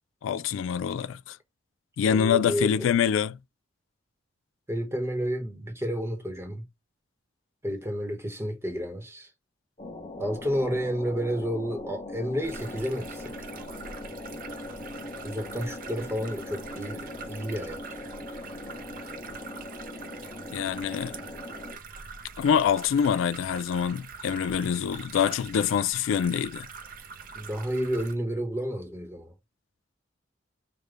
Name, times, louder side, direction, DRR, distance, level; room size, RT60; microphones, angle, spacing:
voice 1, 0.2-1.4 2.0-3.4 20.5-21.2 22.4-26.7, left 8 dB, 90° left, 0.3 m, -25 dB
voice 2, 2.1-2.9 4.7-6.6 7.6-9.3 10.2-13.3 15.2-17.8 27.3-29.3, equal, 15° right, 0.9 m, -31 dB
sound 1, 9.8-21.8, left 2 dB, 35° left, 0.9 m, -40 dB
sound 2, 12.4-28.1, right 5 dB, 45° right, 0.6 m, -44 dB
5.0 x 2.2 x 3.3 m
head